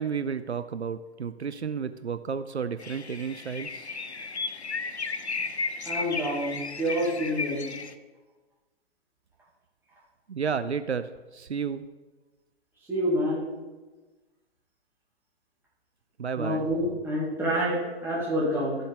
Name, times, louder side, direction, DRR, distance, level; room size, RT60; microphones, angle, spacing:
voice 1, 0.0-3.9 10.3-11.8 16.2-16.7, right 6 dB, 80° right, 12 dB, 0.6 m, -32 dB
sound 1, 2.8-7.9, left 4 dB, 85° left, 0.7 m, -34 dB
voice 2, 5.8-7.7 12.9-13.5 16.4-18.8, equal, 5° right, -6 dB, 2.5 m, -27 dB
13.0 x 7.5 x 3.7 m, 1.2 s
figure-of-eight pair, 120°, 32 cm